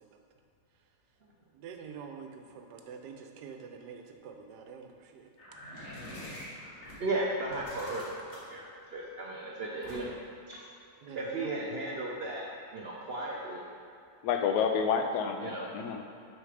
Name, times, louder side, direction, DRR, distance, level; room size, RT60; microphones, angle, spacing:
voice 1, 1.6-5.3 11.0-11.5, right 6 dB, 90° right, 4 dB, 1.2 m, -46 dB
sound 1, 5.4-7.0 7.4-8.6 9.8-10.3, left 1 dB, 55° left, 1.8 m, -45 dB
voice 2, 7.0-10.2 10.5-10.6 11.1-13.6 15.4-15.7, right 2 dB, 60° right, -3 dB, 0.6 m, -35 dB
voice 3, 14.2-16.0, left 6 dB, 80° left, 5 dB, 1.1 m, -29 dB
6.4 x 3.9 x 4.9 m, 2.4 s
omnidirectional pair, 1.7 m